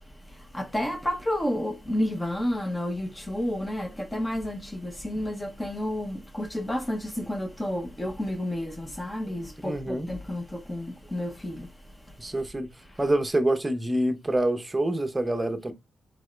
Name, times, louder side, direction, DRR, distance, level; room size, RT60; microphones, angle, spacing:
voice 1, 0.5-11.7, left 1 dB, 15° left, 0.8 m, -30 dB
voice 2, 9.3-10.1 12.2-12.7 13.0-15.7, right 1 dB, 15° right, 0.8 m, -26 dB
3.9 x 3.5 x 3.2 m
cardioid pair, 90°, 0 cm